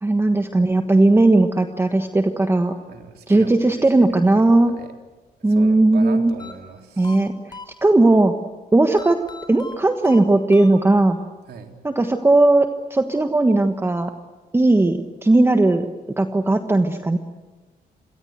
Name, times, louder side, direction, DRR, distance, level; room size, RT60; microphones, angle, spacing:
voice 1, 0.0-2.8 3.3-4.7 5.4-6.3 7.0-8.3 8.7-9.2 9.5-11.2 11.8-14.1 14.5-15.9 16.2-17.2, right 2 dB, 15° right, 6 dB, 1.3 m, -17 dB
voice 2, 2.9-4.2 4.5-4.9 5.5-7.3 11.5-11.8, right 6 dB, 75° right, 4 dB, 3.6 m, -39 dB
sound 1, 6.4-8.2 9.0-11.2, left 3 dB, 25° left, 3.7 m, -41 dB
28.0 x 23.0 x 8.0 m, 1.2 s
cardioid pair, 120°, 16 cm